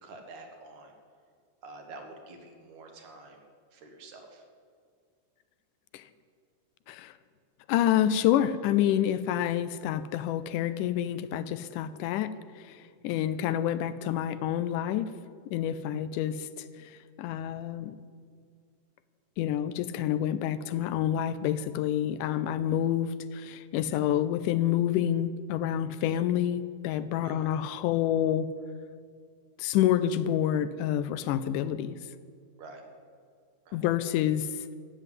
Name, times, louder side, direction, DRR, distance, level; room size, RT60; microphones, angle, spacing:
voice 1, 0.0-0.9 1.6-3.4 3.7-4.4 13.2-13.3 27.2-27.6 32.6-32.8 33.7-33.8, right 2 dB, 65° right, 3 dB, 2.9 m, -47 dB
voice 2, 7.7-15.1 15.5-18.0 19.4-28.5 29.6-32.0 33.7-34.8, left 11 dB, 80° left, 14 dB, 2.0 m, -28 dB
13.5 x 7.8 x 9.2 m, 2.1 s
omnidirectional pair, 3.7 m